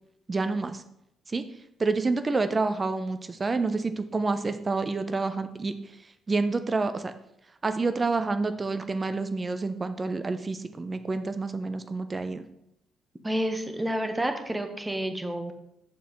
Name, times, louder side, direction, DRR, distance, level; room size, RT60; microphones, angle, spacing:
voice 1, 0.3-0.8 1.3-1.4 1.8-5.7 6.3-7.1 7.6-12.5, right 3 dB, 30° right, 10 dB, 0.7 m, -28 dB
voice 2, 13.2-15.5, right 1 dB, 15° right, 5 dB, 1.3 m, -29 dB
8.2 x 6.9 x 3.2 m, 0.79 s
hypercardioid pair, 45°, 0 cm